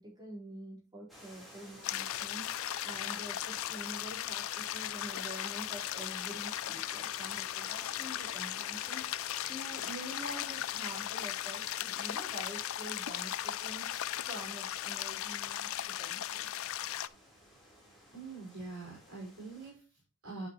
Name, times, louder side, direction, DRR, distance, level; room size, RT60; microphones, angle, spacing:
voice 1, 0.0-16.5, right 1 dB, 20° right, -4 dB, 4.3 m, -47 dB
sound 1, 1.1-19.7, equal, ahead, 3.6 m, -55 dB
sound 2, 1.8-17.1, left 12 dB, 60° left, 0.4 m, -37 dB
voice 2, 18.1-20.5, right 3 dB, 55° right, -4 dB, 4.8 m, -44 dB
11.0 x 6.0 x 3.0 m, 0.33 s
head